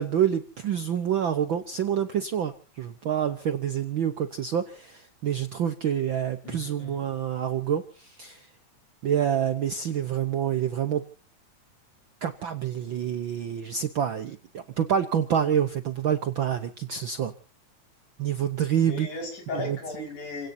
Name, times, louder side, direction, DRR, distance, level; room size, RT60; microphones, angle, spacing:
voice 1, 0.0-8.5 9.0-11.1 12.2-17.3 18.2-19.1 19.5-19.8, right 9 dB, 65° right, 10 dB, 1.2 m, -27 dB
voice 2, 6.4-7.1 18.8-20.5, left 3 dB, 80° left, 2 dB, 7.0 m, -36 dB
29.5 x 17.0 x 2.8 m, 0.36 s
omnidirectional pair, 3.4 m